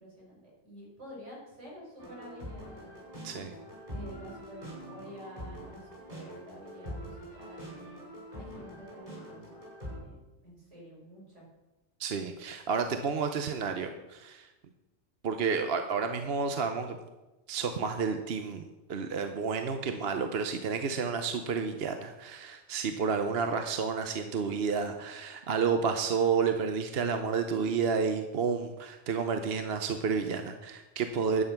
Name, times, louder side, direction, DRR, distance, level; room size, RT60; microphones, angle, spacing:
voice 1, 0.0-3.0 3.9-7.9 8.3-10.2 10.4-11.5, equal, 80° right, -3 dB, 5.0 m, -49 dB
sound 1, 2.0-10.0, equal, 35° right, 5.5 m, -44 dB
voice 2, 12.0-14.5 15.2-17.0 17.5-31.4, right 5 dB, 60° right, 7 dB, 1.0 m, -30 dB
11.0 x 9.0 x 5.9 m, 1.1 s
omnidirectional pair, 1.2 m